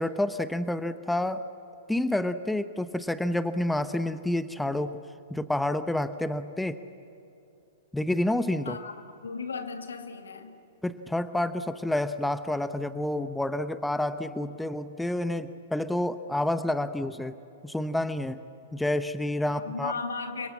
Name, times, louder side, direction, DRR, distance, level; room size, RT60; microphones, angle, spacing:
voice 1, 0.0-1.5 1.9-5.0 5.3-6.8 7.9-8.8 10.8-17.3 17.6-18.4 18.7-19.9, left 1 dB, 5° left, 0.9 m, -29 dB
voice 2, 9.2-10.6 19.5-20.5, left 4 dB, 80° left, 2.4 m, -35 dB
28.5 x 24.0 x 8.4 m
figure-of-eight pair, 110°, 0 cm